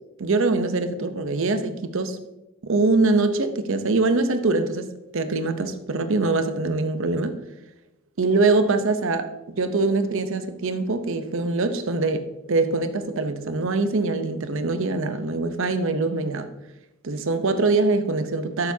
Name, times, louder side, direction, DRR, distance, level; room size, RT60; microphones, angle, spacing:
voice 1, 0.2-2.2 2.6-4.9 5.1-7.4 8.2-16.5 17.0-18.7, right 3 dB, 60° right, 0.8 m, -23 dB
12.5 x 6.9 x 2.8 m
head